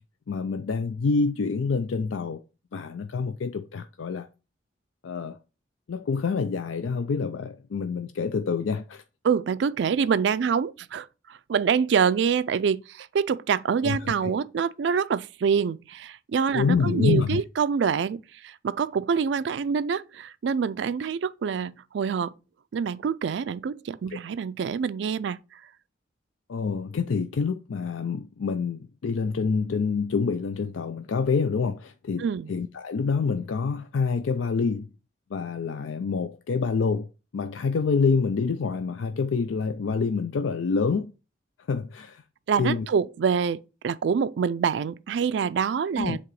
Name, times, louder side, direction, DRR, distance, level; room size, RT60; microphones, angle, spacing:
voice 1, 0.3-2.4 2.7-4.3 5.0-5.4 5.9-9.0 13.8-14.3 16.5-17.4 24.1-24.2 26.5-34.9 35.3-37.1 37.3-41.1 41.7-42.2 42.6-42.9 46.0-46.2, left 5 dB, 85° left, 0.4 m, -27 dB
voice 2, 9.2-11.1 11.5-22.3 22.7-25.4 32.2-32.5 42.5-46.2, right 6 dB, 65° right, 0.3 m, -26 dB
7.6 x 2.9 x 4.7 m
head